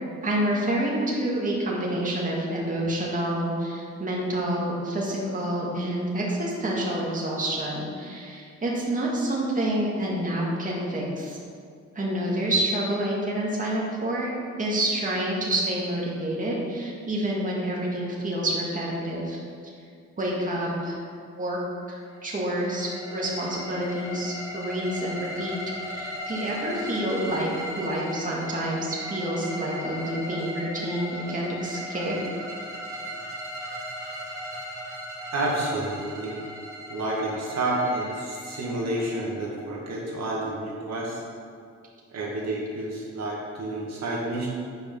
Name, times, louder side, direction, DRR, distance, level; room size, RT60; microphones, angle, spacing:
voice 1, 0.2-11.4 12.0-14.3 14.6-19.4 20.2-21.0 21.4-21.6 21.9-25.6 25.8-32.2, right 1 dB, 25° right, -5 dB, 2.1 m, -28 dB
sound 1, 22.1-39.9, equal, 10° right, 2.4 m, -37 dB
voice 2, 35.3-36.4 36.9-41.2 42.1-44.5, right 1 dB, 60° right, -4 dB, 2.1 m, -29 dB
7.8 x 5.4 x 6.2 m, 2.2 s
cardioid pair, 90°, 30 cm